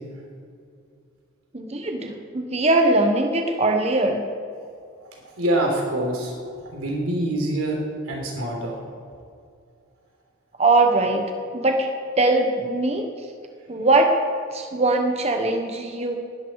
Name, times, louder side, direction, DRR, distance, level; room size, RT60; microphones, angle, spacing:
voice 1, 1.5-4.2 10.6-11.2 11.5-11.9 12.2-13.0 13.7-14.2 14.5-16.2, right 2 dB, 30° right, 4 dB, 1.1 m, -21 dB
voice 2, 5.4-6.4 6.7-7.8 8.1-8.8, right 1 dB, 90° right, 0 dB, 4.0 m, -25 dB
19.0 x 13.0 x 4.8 m, 2.3 s
head